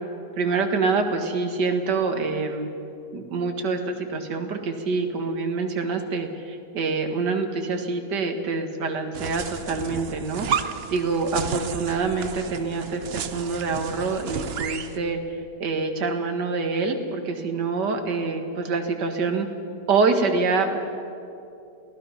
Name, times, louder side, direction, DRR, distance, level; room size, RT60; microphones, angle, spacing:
voice 1, 0.4-2.7 3.1-10.5 10.9-15.2 15.6-19.5 19.9-20.8, right 4 dB, 70° right, 5 dB, 2.2 m, -26 dB
sound 1, 9.1-15.0, right 7 dB, 55° right, 0.7 m, -32 dB
28.0 x 17.5 x 5.7 m, 2.7 s
omnidirectional pair, 1.9 m